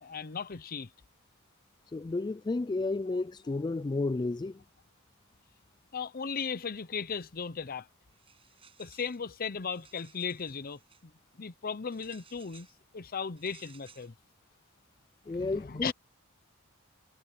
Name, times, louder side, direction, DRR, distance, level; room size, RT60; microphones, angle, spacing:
voice 1, 0.0-0.9 5.9-7.9 8.8-11.1 11.4-12.7 12.9-14.1 15.3-15.9, left 6 dB, 45° left, 0.7 m, -36 dB
voice 2, 1.9-4.6 15.3-15.9, left 3 dB, 20° left, 0.3 m, -32 dB
sound 1, 8.1-9.2 9.6-11.0 11.9-12.8 13.4-14.1, right 6 dB, 25° right, 6.6 m, -59 dB
head